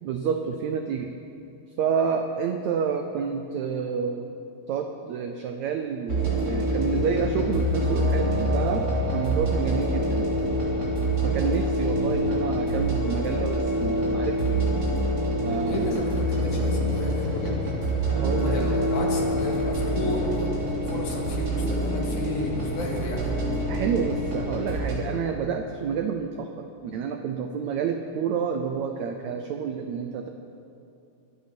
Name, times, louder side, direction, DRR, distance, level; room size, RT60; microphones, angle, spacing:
voice 1, 0.0-1.1 1.8-4.4 4.7-10.3 11.2-14.7 15.4-16.0 18.1-18.7 23.7-30.3, right 6 dB, 85° right, 5 dB, 1.6 m, -29 dB
sound 1, 6.1-25.0, equal, 35° right, 3.5 m, -26 dB
voice 2, 15.7-17.8 18.3-23.3, left 1 dB, 60° left, -1 dB, 3.2 m, -32 dB
22.5 x 8.6 x 6.0 m, 2.7 s
omnidirectional pair, 4.1 m